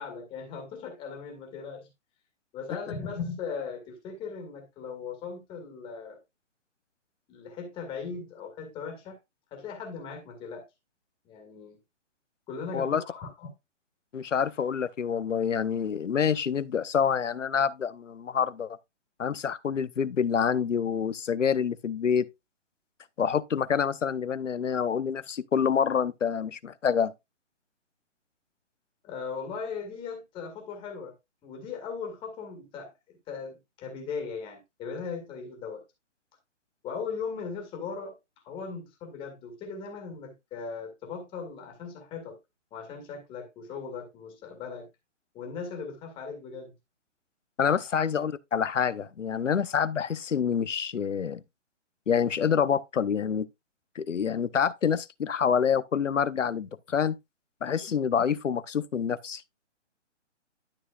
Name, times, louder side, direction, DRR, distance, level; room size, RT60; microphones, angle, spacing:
voice 1, 0.0-1.9 2.5-6.2 7.3-9.2 9.5-10.7 11.2-11.8 12.5-13.5 29.0-31.1 31.4-35.8 36.8-38.2 38.4-42.4 42.7-44.9 45.3-46.7 47.9-48.0, left 5 dB, 15° left, 2.1 m, -38 dB
voice 2, 12.7-13.0 14.1-18.8 19.2-22.3 23.2-27.1 47.6-51.4 52.1-53.5 53.9-57.2 57.6-59.4, left 7 dB, 90° left, 0.9 m, -27 dB
12.0 x 6.1 x 2.4 m
hypercardioid pair, 155°, 36 cm